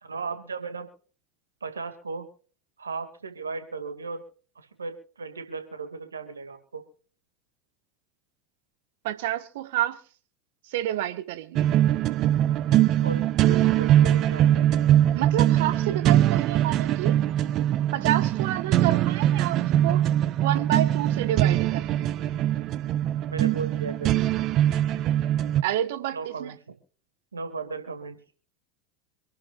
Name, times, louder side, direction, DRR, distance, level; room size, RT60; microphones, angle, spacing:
voice 1, 0.0-0.9 1.6-2.3 2.8-4.2 4.6-6.8 12.7-14.7 23.3-24.3 26.1-26.8 27.3-28.2, right 4 dB, 85° right, 2.1 m, -36 dB
voice 2, 9.0-10.0 10.7-11.6 15.1-17.2 17.9-20.0 20.4-22.1 25.6-26.5, right 12 dB, 65° right, 1.3 m, -29 dB
sound 1, 11.5-25.6, right 12 dB, 45° right, 0.8 m, -22 dB
26.5 x 11.5 x 2.4 m
hypercardioid pair, 80°, 0 cm